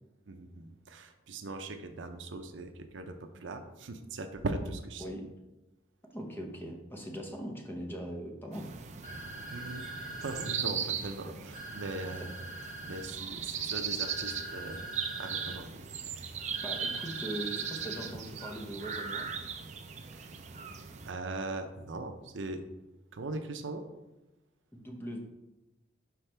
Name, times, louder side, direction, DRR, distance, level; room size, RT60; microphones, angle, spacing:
voice 1, 0.3-5.0 9.5-9.9 10.2-12.3 12.8-14.8 15.2-15.8 20.1-20.4 21.0-22.6 23.1-23.8, right 2 dB, 80° right, 7 dB, 0.6 m, -40 dB
voice 2, 6.1-8.7 16.6-19.3 24.7-25.2, equal, 10° left, 1 dB, 0.7 m, -40 dB
sound 1, 8.5-21.1, right 7 dB, 35° right, 0.4 m, -38 dB
sound 2, 9.0-10.6 11.5-13.1 14.0-15.6 16.5-18.1, right 1 dB, 40° left, 1.8 m, -44 dB
5.9 x 4.8 x 3.3 m, 1.0 s
head